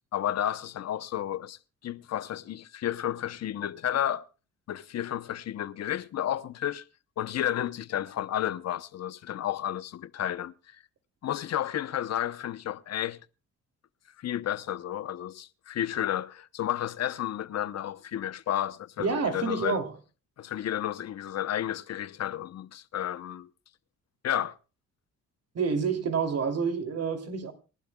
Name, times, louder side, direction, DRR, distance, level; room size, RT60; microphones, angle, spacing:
voice 1, 0.1-1.6 1.8-4.2 4.7-6.8 7.2-10.8 11.2-13.2 14.2-19.8 20.4-23.5 24.2-24.6, left 11 dB, 60° left, 0.8 m, -32 dB
voice 2, 19.0-19.9 25.5-27.5, right 5 dB, 55° right, 2.8 m, -28 dB
27.5 x 12.0 x 2.3 m
cardioid pair, 90°, 30 cm